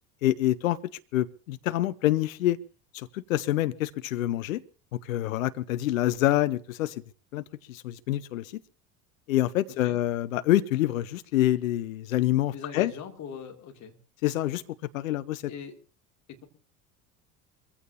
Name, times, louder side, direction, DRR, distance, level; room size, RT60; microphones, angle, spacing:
voice 1, 0.2-0.8 1.1-2.6 2.9-4.6 4.9-7.0 7.3-8.6 9.3-12.9 14.2-14.6 14.9-15.4, left 14 dB, 65° left, 15 dB, 0.8 m, -26 dB
voice 2, 9.7-10.0 12.5-14.0 15.5-15.8 16.3-16.5, left 7 dB, 40° left, 3 dB, 2.9 m, -41 dB
24.0 x 16.0 x 2.9 m, 0.37 s
figure-of-eight pair, 70°, 44 cm